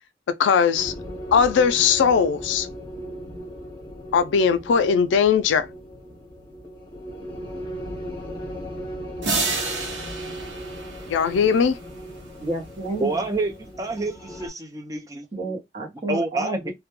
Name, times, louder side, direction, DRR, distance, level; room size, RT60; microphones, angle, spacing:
voice 1, 0.4-0.9 1.3-2.7 4.1-5.7 11.1-11.8, left 6 dB, 90° left, 0.3 m, -19 dB
sound 1, 0.8-14.5, equal, 25° left, 0.8 m, -37 dB
sound 2, 9.2-11.7, right 3 dB, 85° right, 0.8 m, -29 dB
voice 2, 12.4-13.1 15.3-16.7, right 2 dB, 40° right, 0.8 m, -30 dB
voice 3, 13.0-15.3 16.1-16.7, right 2 dB, 20° right, 0.4 m, -28 dB
2.2 x 2.1 x 2.9 m
head